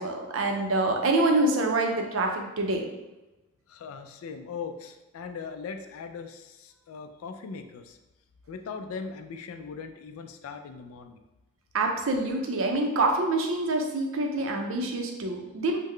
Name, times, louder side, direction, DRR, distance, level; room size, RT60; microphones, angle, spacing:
voice 1, 0.0-2.8 11.7-15.8, right 2 dB, 65° right, 2 dB, 0.5 m, -26 dB
voice 2, 3.7-8.0 8.5-11.2, left 5 dB, 75° left, 7 dB, 0.3 m, -39 dB
3.7 x 2.1 x 3.1 m, 1.0 s
head